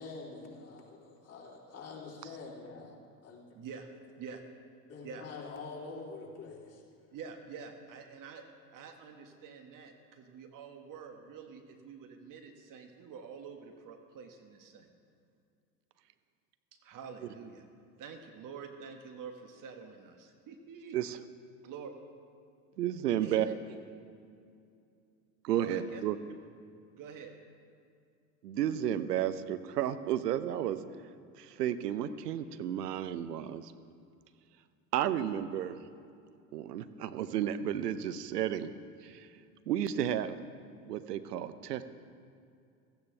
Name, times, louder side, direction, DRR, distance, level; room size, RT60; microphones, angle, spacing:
voice 1, 0.0-3.0 3.2-3.5 4.9-6.8, left 4 dB, 30° left, -4 dB, 3.5 m, -45 dB
voice 2, 3.6-3.9 4.2-4.4 5.0-5.3 7.1-8.4 8.7-14.4 16.8-17.6 18.0-21.0 21.6-21.9 23.2-23.5 25.5-26.0 26.9-27.3, right 6 dB, 40° right, 5 dB, 1.4 m, -47 dB
voice 3, 22.8-23.5 25.4-26.2 28.4-30.8 31.4-33.7 34.9-35.8 36.5-38.7 39.0-39.3 39.7-40.4 40.9-41.8, right 10 dB, 80° right, 12 dB, 0.8 m, -32 dB
16.0 x 14.5 x 3.4 m, 2.4 s
hypercardioid pair, 80°, 47 cm